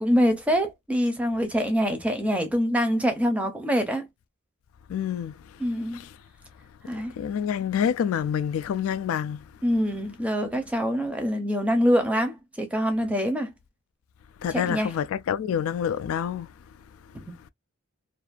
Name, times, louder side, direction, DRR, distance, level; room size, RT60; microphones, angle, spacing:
voice 1, 0.0-4.1 5.6-6.0 6.9-7.1 9.6-13.5 14.5-14.9, equal, 5° right, 0.5 m, -25 dB
voice 2, 4.9-5.3 5.9-6.0 7.2-9.4 14.4-16.5, left 8 dB, 75° left, 0.3 m, -27 dB
2.5 x 2.4 x 2.2 m
head